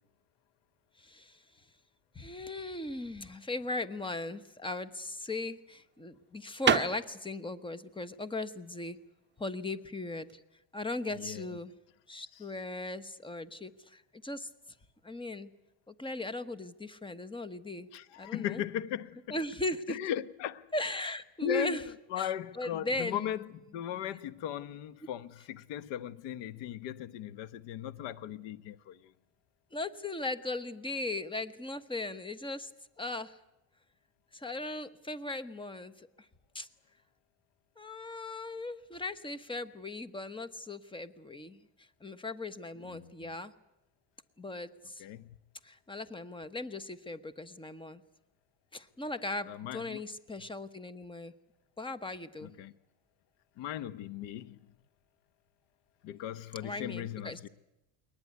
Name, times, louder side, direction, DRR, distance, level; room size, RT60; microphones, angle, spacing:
voice 1, 1.0-1.4 2.1-9.0 9.4-10.4 10.7-11.7 12.1-14.5 15.0-15.5 15.9-17.9 18.2-18.6 19.3-20.0 20.7-21.8 22.2-23.3 29.7-32.7 33.0-33.4 34.3-36.1 36.5-36.7 37.8-43.5 44.4-45.0 45.6-48.0 48.7-51.3 51.8-52.5 56.6-57.4, left 2 dB, 10° left, 1.1 m, -38 dB
sound 1, 4.8-10.4, right 8 dB, 25° right, 0.9 m, -34 dB
voice 2, 11.1-11.6 17.9-19.4 19.9-20.7 21.4-29.1 42.8-43.3 45.0-45.4 49.5-50.0 52.4-52.7 53.6-54.6 56.0-57.5, left 10 dB, 75° left, 1.1 m, -38 dB
22.0 x 19.5 x 9.5 m
cardioid pair, 120°, 43 cm